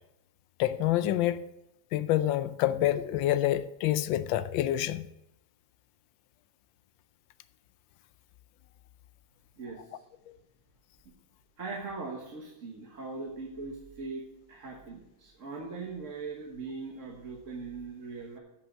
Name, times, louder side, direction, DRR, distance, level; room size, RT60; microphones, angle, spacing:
voice 1, 0.6-1.4 1.9-5.0, left 13 dB, 90° left, 1.4 m, -27 dB
voice 2, 11.6-18.4, right 4 dB, 45° right, 1.5 m, -40 dB
8.9 x 5.7 x 7.4 m
omnidirectional pair, 2.0 m